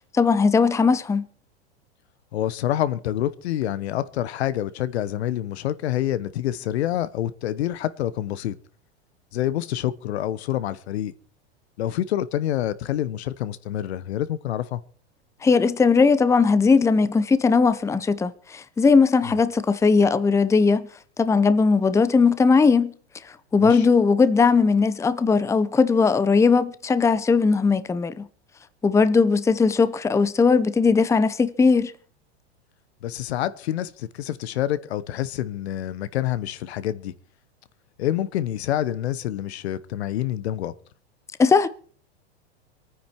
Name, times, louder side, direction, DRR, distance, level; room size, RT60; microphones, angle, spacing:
voice 1, 0.1-1.3 15.4-20.9 21.2-22.9 23.2-28.3 28.8-31.9 41.4-41.7, left 4 dB, 10° left, 0.7 m, -19 dB
voice 2, 2.3-8.6 9.3-11.1 11.8-14.8 19.2-19.4 23.6-23.9 33.0-37.1 38.0-40.7, left 12 dB, 75° left, 1.1 m, -27 dB
24.0 x 9.8 x 4.5 m
hypercardioid pair, 110°, 33 cm